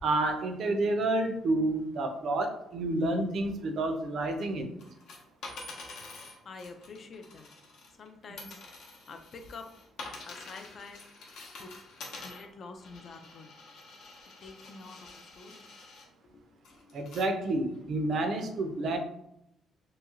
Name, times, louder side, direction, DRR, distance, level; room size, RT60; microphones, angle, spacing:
voice 1, 0.0-4.7 16.9-19.0, right 2 dB, 55° right, 5 dB, 0.4 m, -29 dB
sound 1, 4.8-8.1 8.4-16.1 16.6-17.3 17.8-17.9, left 3 dB, 70° left, 0.7 m, -47 dB
voice 2, 6.4-7.5 8.0-8.6 9.1-9.7 10.3-11.0 11.6-11.7 12.2-13.5 14.4-15.6 16.8-17.0, left 4 dB, 45° left, 6 dB, 0.3 m, -47 dB
2.9 x 2.7 x 2.4 m, 0.79 s
cardioid pair, 130°, 0 cm